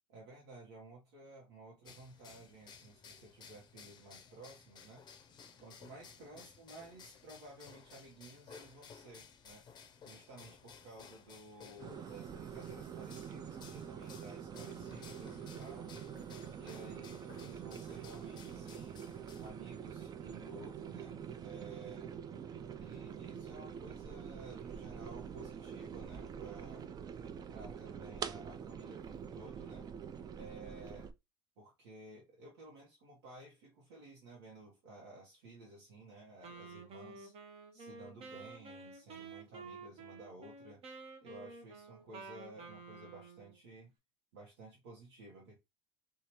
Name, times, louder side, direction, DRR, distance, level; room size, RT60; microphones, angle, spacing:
voice 1, 0.1-5.1 5.6-9.7 10.0-15.9 16.5-19.0 19.4-22.1 22.8-26.9 27.5-29.9 30.3-31.1 31.6-37.3 37.7-40.8 41.2-43.9 44.3-45.6, right 2 dB, 75° right, 1.0 m, -54 dB
sound 1, 1.9-19.5, left 6 dB, 35° left, 0.6 m, -57 dB
sound 2, 11.8-31.1, right 7 dB, 30° right, 0.4 m, -45 dB
Wind instrument woodwind instrument, 36.4-43.6, right 3 dB, 45° right, 0.8 m, -51 dB
2.7 x 2.4 x 2.9 m
hypercardioid pair, 75°, 13 cm